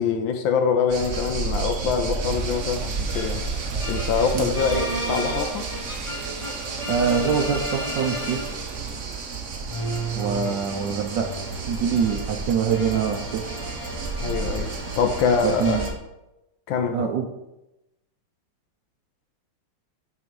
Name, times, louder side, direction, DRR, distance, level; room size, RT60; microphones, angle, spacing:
voice 1, 0.0-3.4 3.9-5.7 14.2-14.7 15.0-15.8 16.7-17.1, left 6 dB, 75° left, 1.3 m, -24 dB
sound 1, 0.9-15.9, right 4 dB, 50° right, 0.9 m, -31 dB
sound 2, 2.2-9.2, right 5 dB, 85° right, 2.0 m, -42 dB
sound 3, 3.1-8.8 9.7-15.9, equal, 35° left, 0.5 m, -34 dB
voice 2, 6.9-8.4 10.1-11.3 11.7-13.4 15.4-15.9 16.9-17.3, right 7 dB, 65° right, 1.2 m, -24 dB
9.4 x 3.8 x 4.7 m
omnidirectional pair, 2.4 m